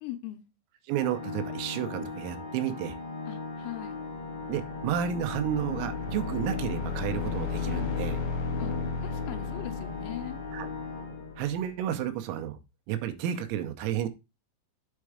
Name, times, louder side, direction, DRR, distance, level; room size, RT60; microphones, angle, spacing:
voice 1, 0.0-0.5 3.3-4.0 8.6-8.7 9.0-10.4, left 13 dB, 90° left, 3.5 m, -40 dB
Organ, 0.9-11.8, left 3 dB, 55° left, 3.2 m, -39 dB
voice 2, 0.9-3.0 4.5-8.2 10.5-10.7 11.4-12.6 12.9-14.1, right 10 dB, 85° right, 3.5 m, -31 dB
sound 1, 4.0-11.7, left 6 dB, 70° left, 2.8 m, -35 dB
8.2 x 4.6 x 4.8 m
omnidirectional pair, 5.9 m